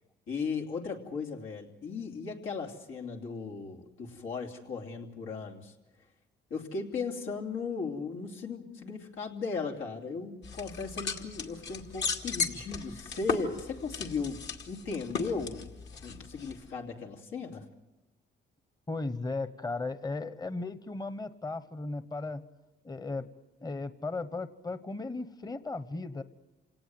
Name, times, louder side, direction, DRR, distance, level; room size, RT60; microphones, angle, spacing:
voice 1, 0.3-5.7 6.5-15.7 16.0-17.6, left 4 dB, 85° left, 1 dB, 2.9 m, -37 dB
sound 1, 10.4-16.7, left 5 dB, 65° left, 2.4 m, -37 dB
voice 2, 18.9-22.5 22.8-23.3 23.6-26.2, left 3 dB, 20° left, 13 dB, 1.0 m, -36 dB
28.0 x 18.0 x 7.8 m, 1.0 s
cardioid pair, 90°, 20 cm